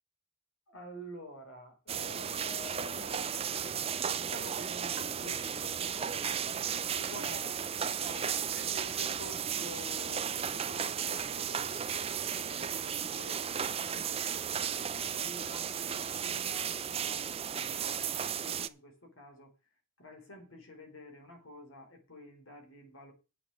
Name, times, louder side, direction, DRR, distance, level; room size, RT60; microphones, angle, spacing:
voice 1, 0.7-3.8 4.1-7.6 8.0-14.5 14.9-19.6 20.0-23.1, left 1 dB, 70° left, 4.1 m, -49 dB
sound 1, 1.9-18.7, right 8 dB, 30° right, 0.5 m, -34 dB
9.8 x 7.7 x 6.2 m
head